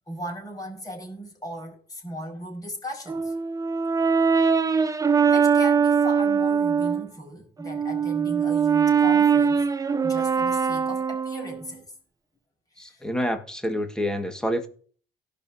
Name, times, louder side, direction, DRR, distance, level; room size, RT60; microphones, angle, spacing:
voice 1, 0.1-3.3 5.2-9.7 10.0-11.9 12.8-13.0, equal, 20° left, 5.1 m, -37 dB
Brass instrument, 3.1-7.1 7.6-11.7, right 6 dB, 20° right, 0.5 m, -22 dB
voice 2, 12.8-14.7, equal, 5° left, 1.7 m, -28 dB
17.5 x 5.8 x 2.7 m
cardioid pair, 110°, 17 cm